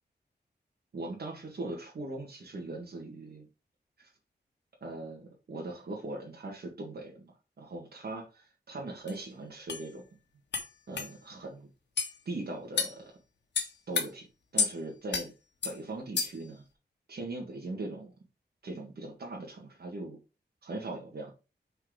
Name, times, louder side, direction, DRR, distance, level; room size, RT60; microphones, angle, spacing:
voice 1, 0.9-3.4 4.0-4.1 4.8-10.1 10.9-11.7 12.2-13.1 13.9-14.3 14.5-15.3 15.6-16.6 17.1-18.1 18.6-20.2 20.6-21.3, right 2 dB, 60° right, -1 dB, 1.7 m, -40 dB
sound 1, 9.1-9.2 9.7-9.8 10.5-10.7 11.0-11.1 12.0-12.1 12.8-13.0 13.5-14.1 14.6-14.7 15.1-15.3 15.6-15.8 16.2-16.5, left 5 dB, 75° left, 1.4 m, -30 dB
6.2 x 4.5 x 4.8 m, 0.30 s
wide cardioid pair, 165°, 18 cm